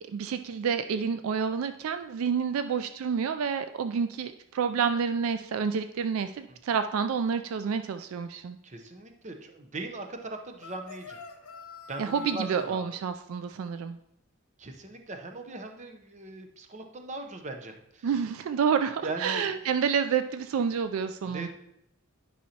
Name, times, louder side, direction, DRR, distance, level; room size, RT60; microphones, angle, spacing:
voice 1, 0.1-8.6 12.0-14.0 18.0-21.5, right 6 dB, 70° right, 9 dB, 0.3 m, -29 dB
voice 2, 8.6-11.2 11.9-12.8 14.6-18.1 19.0-19.7 21.2-21.5, right 2 dB, 35° right, 5 dB, 0.7 m, -39 dB
sound 1, 10.6-12.7, left 5 dB, 75° left, 1.0 m, -45 dB
10.5 x 5.5 x 2.8 m, 0.77 s
head